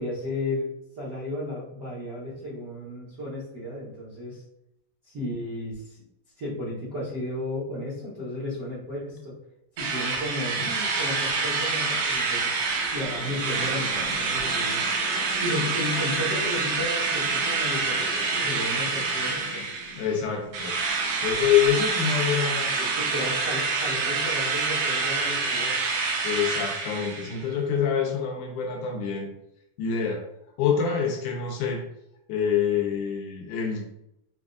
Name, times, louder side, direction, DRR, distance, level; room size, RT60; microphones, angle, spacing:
voice 1, 0.0-4.4 5.0-6.0 6.4-9.3 9.8-12.5 12.9-14.8 15.4-19.6 22.8-25.8, left 1 dB, 70° right, -10 dB, 0.9 m, -33 dB
Drill, 9.8-20.2 20.5-27.4, right 4 dB, 85° right, 2.3 m, -27 dB
sound 1, 12.2-21.6, left 3 dB, 65° left, 1.7 m, -45 dB
voice 2, 20.0-20.8 21.2-22.7 26.2-29.3 29.8-30.2 30.6-31.8 32.3-33.8, left 8 dB, 85° left, -1 dB, 2.2 m, -26 dB
6.0 x 2.4 x 2.5 m, 0.79 s
omnidirectional pair, 3.6 m